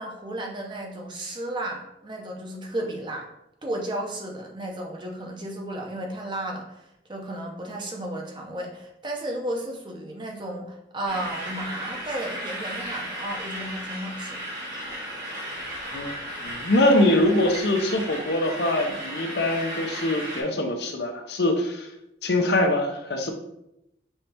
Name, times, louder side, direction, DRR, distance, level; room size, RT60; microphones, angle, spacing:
voice 1, 0.0-3.3 3.6-6.8 7.1-14.4, right 1 dB, 25° right, 0 dB, 0.7 m, -33 dB
sound 1, 11.1-20.4, equal, 55° right, 1.6 m, -35 dB
voice 2, 16.4-21.9 22.2-23.3, left 1 dB, 70° left, 4 dB, 0.7 m, -23 dB
5.7 x 3.3 x 2.8 m, 0.84 s
head